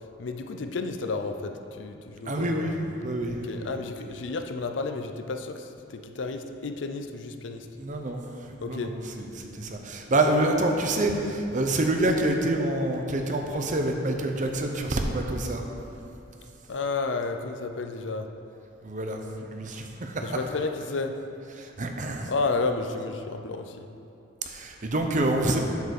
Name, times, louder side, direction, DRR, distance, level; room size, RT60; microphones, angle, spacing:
voice 1, 0.0-2.8 3.3-7.7 8.6-9.0 16.7-18.3 20.2-21.2 22.3-23.9, left 3 dB, 70° left, 6 dB, 0.5 m, -32 dB
voice 2, 2.3-2.8 3.0-3.7 7.8-15.6 18.8-20.4 21.6-22.3 24.4-25.6, right 1 dB, 40° right, 3 dB, 0.8 m, -27 dB
8.0 x 5.0 x 6.5 m, 2.8 s
head